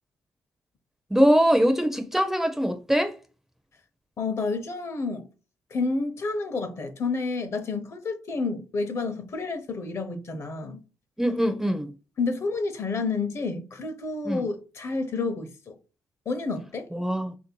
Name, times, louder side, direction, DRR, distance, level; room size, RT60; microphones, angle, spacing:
voice 1, 1.1-3.2 11.2-11.9 14.2-14.5 16.9-17.4, equal, 5° right, 0.4 m, -22 dB
voice 2, 4.2-5.3 5.7-10.8 12.2-15.8 16.3-16.9, left 3 dB, 45° left, 0.7 m, -30 dB
3.2 x 2.6 x 4.4 m
cardioid pair, 110°, 6 cm